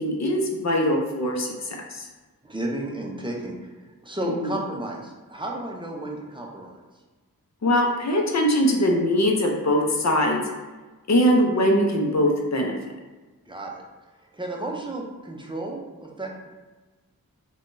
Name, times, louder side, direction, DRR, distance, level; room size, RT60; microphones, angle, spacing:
voice 1, 0.0-1.5 1.9-2.1 4.2-4.5 7.6-10.4 11.1-12.8, equal, 50° left, 1 dB, 0.6 m, -21 dB
voice 2, 2.4-3.6 4.0-6.8 13.5-13.8 14.3-16.5, right 2 dB, 15° right, -1 dB, 0.5 m, -32 dB
3.5 x 2.2 x 2.5 m, 1.2 s
wide cardioid pair, 50°, 35 cm